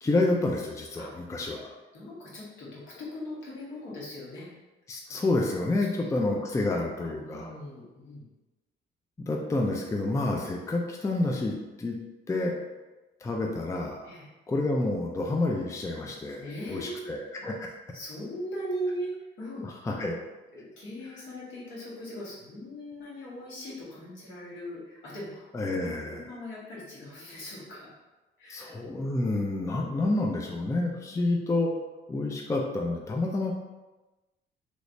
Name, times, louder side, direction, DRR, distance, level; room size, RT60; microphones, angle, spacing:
voice 1, 0.0-1.7 4.9-7.5 9.2-12.0 12.3-12.5 13.2-14.1 14.5-17.5 19.6-20.2 25.5-26.3 28.5-31.7 32.1-33.5, left 2 dB, 15° left, 1 dB, 0.4 m, -29 dB
voice 2, 1.9-4.5 5.1-5.2 5.8-8.2 14.0-14.3 16.3-17.1 17.4-17.5 17.9-19.7 20.5-27.9 28.4-28.8 31.0-31.3, equal, 75° left, -7 dB, 1.5 m, -40 dB
3.1 x 3.1 x 2.6 m, 1.1 s
cardioid pair, 90°, 20 cm